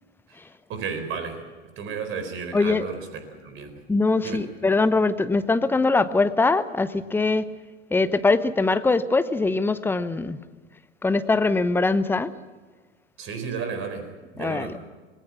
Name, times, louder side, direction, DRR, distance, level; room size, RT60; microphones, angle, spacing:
voice 1, 0.7-1.4 1.8-3.8 4.2-4.5 13.2-14.8, right 5 dB, 35° right, 8 dB, 4.4 m, -33 dB
voice 2, 3.9-7.4 7.9-10.4 11.0-12.3 14.4-14.7, left 3 dB, 5° left, 13 dB, 0.8 m, -22 dB
26.5 x 19.5 x 6.1 m, 1.4 s
figure-of-eight pair, 100°, 36 cm